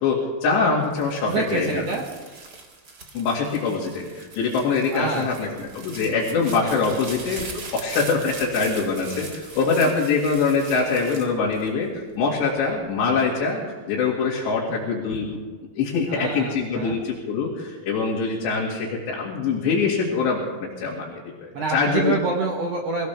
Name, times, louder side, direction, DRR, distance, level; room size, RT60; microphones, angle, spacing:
voice 1, 0.0-1.8 3.1-7.4 7.7-13.6 13.9-15.4 15.8-22.1, left 4 dB, 80° left, -4 dB, 4.3 m, -24 dB
sound 1, 0.8-12.2 12.7-13.3, right 3 dB, 50° right, 1.1 m, -41 dB
voice 2, 1.3-2.0 4.9-5.3 16.1-17.0 21.5-23.1, right 4 dB, 85° right, 0 dB, 1.3 m, -26 dB
24.0 x 16.5 x 3.5 m, 1.4 s
omnidirectional pair, 4.9 m